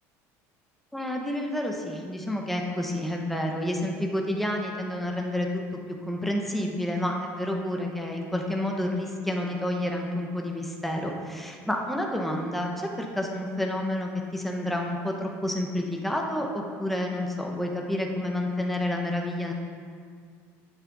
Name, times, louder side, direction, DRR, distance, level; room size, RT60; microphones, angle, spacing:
voice 1, 0.9-5.6 6.1-19.5, left 1 dB, ahead, 0 dB, 1.1 m, -29 dB
10.0 x 7.7 x 4.1 m, 2.1 s
cardioid pair, 135°, 7 cm